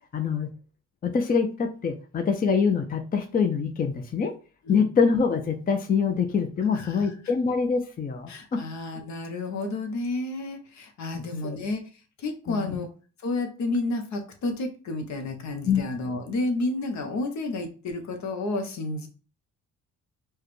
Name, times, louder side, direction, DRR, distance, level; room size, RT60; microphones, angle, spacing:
voice 1, 0.1-0.5 1.0-4.3 4.7-8.6 11.1-11.6 12.5-12.8 15.6-15.8, left 5 dB, 30° left, 6 dB, 0.5 m, -25 dB
voice 2, 6.7-7.1 8.3-11.8 12.2-12.9 13.2-19.1, left 2 dB, 70° left, 5 dB, 0.9 m, -31 dB
4.6 x 2.3 x 3.1 m, 0.37 s
cardioid pair, 90°, 30 cm